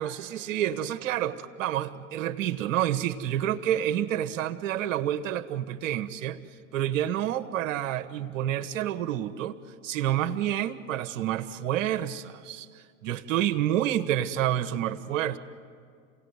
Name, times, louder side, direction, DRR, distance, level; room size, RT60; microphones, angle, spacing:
voice 1, 0.0-6.4 6.7-9.6 9.8-15.4, right 11 dB, 65° right, 11 dB, 1.2 m, -29 dB
28.0 x 18.5 x 8.1 m, 2.2 s
hypercardioid pair, 85°, 41 cm